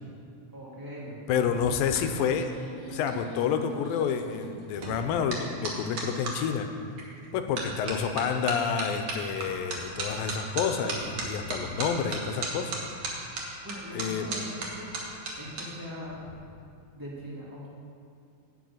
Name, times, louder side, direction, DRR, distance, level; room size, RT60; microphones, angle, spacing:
voice 1, 0.5-1.6 13.6-14.9 15.4-16.2 16.9-17.7, equal, 10° right, -6 dB, 0.8 m, -41 dB
voice 2, 1.3-2.5 2.9-6.7 7.3-12.7 13.9-14.3, left 7 dB, 90° left, 7 dB, 2.4 m, -29 dB
Carine-taille crayon, 1.4-6.4 7.0-7.3 7.6-15.6 15.9-16.3, right 3 dB, 55° right, 2.4 m, -36 dB
9.4 x 6.2 x 8.4 m, 2.5 s
omnidirectional pair, 4.0 m